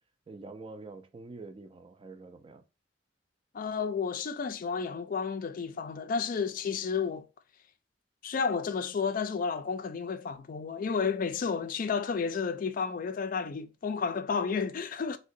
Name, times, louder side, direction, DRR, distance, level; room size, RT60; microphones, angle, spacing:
voice 1, 0.3-2.6, right 3 dB, 30° right, 0.4 m, -46 dB
voice 2, 3.5-7.3 8.2-15.2, left 5 dB, 50° left, 0.4 m, -31 dB
3.6 x 2.1 x 2.5 m
head